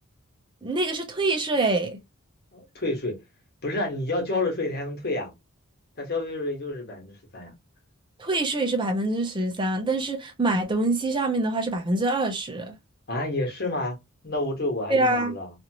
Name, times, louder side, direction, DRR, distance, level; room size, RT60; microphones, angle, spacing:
voice 1, 0.6-2.0 8.2-12.7 14.9-15.3, right 2 dB, 25° right, 0.5 m, -25 dB
voice 2, 2.5-3.2 3.6-5.3 6.0-7.5 13.1-14.0 14.2-15.5, left 2 dB, 50° left, 1.2 m, -29 dB
2.8 x 2.5 x 2.8 m
head